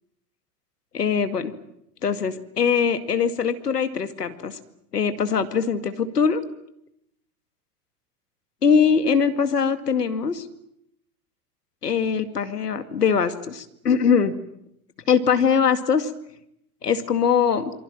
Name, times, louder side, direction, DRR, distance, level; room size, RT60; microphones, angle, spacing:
voice 1, 0.9-1.5 2.0-4.6 4.9-6.4 8.6-10.5 11.8-14.3 15.1-16.1 16.8-17.7, left 6 dB, 85° left, 9 dB, 2.3 m, -22 dB
28.0 x 23.5 x 7.6 m, 0.76 s
hypercardioid pair, 90°, 46 cm